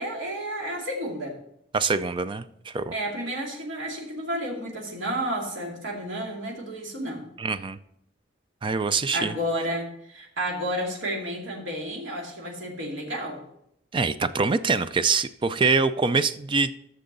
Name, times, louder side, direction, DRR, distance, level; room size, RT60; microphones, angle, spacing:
voice 1, 0.0-1.4 2.9-7.2 9.1-13.4, equal, 80° right, -1 dB, 2.5 m, -31 dB
voice 2, 1.7-2.9 7.4-7.8 8.6-9.3 13.9-16.7, right 4 dB, 25° right, 13 dB, 0.3 m, -24 dB
11.5 x 6.6 x 4.0 m, 0.76 s
head